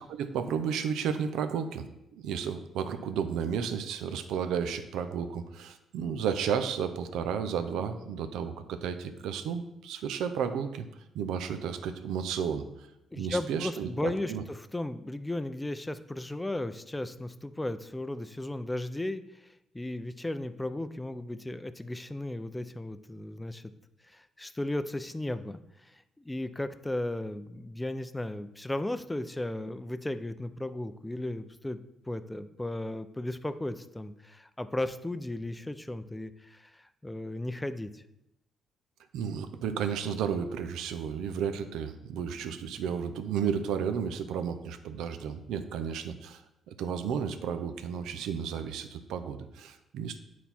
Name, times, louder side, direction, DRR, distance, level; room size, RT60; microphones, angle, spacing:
voice 1, 0.1-1.9 2.1-10.9 11.1-12.9 13.2-14.4 39.1-46.4 46.7-50.2, right 7 dB, 85° right, 9 dB, 0.6 m, -33 dB
voice 2, 13.1-23.6 24.1-31.8 32.1-38.0, left 1 dB, 10° left, 11 dB, 0.5 m, -35 dB
9.2 x 4.2 x 4.3 m, 0.86 s
cardioid pair, 90°, 0 cm